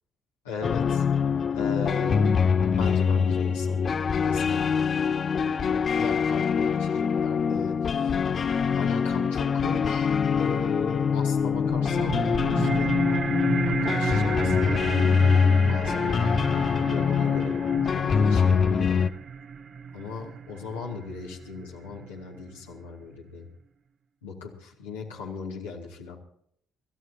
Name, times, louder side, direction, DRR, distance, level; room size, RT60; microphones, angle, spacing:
voice 1, 0.4-1.0 1.5-2.4 2.8-4.0 4.2-4.9 5.4-8.1 8.7-12.9 13.6-14.9 15.7-16.2 16.8-17.7 17.9-19.0 19.9-23.5 24.2-26.2, left 4 dB, 80° left, -3 dB, 2.4 m, -37 dB
sound 1, 0.6-19.1, left 6 dB, 45° left, 0.7 m, -24 dB
sound 2, 11.4-22.4, right 6 dB, 50° right, 0.9 m, -33 dB
25.5 x 14.5 x 2.9 m, 0.66 s
figure-of-eight pair, 45°, 0 cm